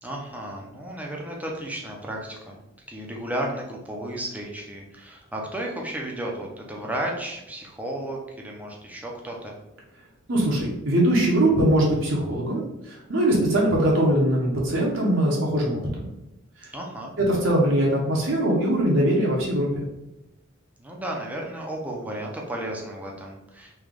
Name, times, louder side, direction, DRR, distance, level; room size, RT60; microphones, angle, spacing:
voice 1, 0.0-2.6 2.9-9.5 16.7-17.1 20.8-23.7, right 1 dB, 10° right, -1 dB, 0.7 m, -33 dB
voice 2, 10.3-15.8 17.2-19.8, right 1 dB, 70° right, -3 dB, 0.9 m, -21 dB
3.3 x 3.0 x 3.6 m, 0.92 s
head